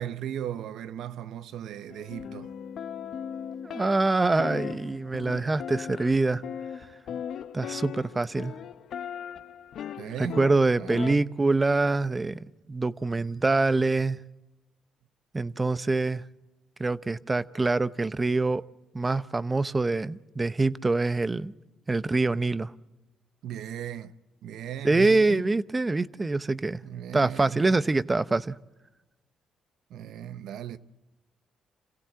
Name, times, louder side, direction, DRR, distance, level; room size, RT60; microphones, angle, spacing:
voice 1, 0.0-2.5 9.9-10.5 10.8-11.4 23.4-24.1 24.4-25.5 26.8-27.7 29.9-30.8, right 9 dB, 80° right, 1.0 m, -37 dB
sound 1, 1.9-11.1, left 8 dB, 70° left, 0.9 m, -38 dB
voice 2, 3.6-6.4 7.5-8.5 10.2-14.2 15.3-16.2 16.8-18.6 18.9-21.5 21.9-22.7 24.8-26.8 27.1-28.5, right 3 dB, 20° right, 0.8 m, -25 dB
27.5 x 16.0 x 7.7 m
cardioid pair, 90°, 0 cm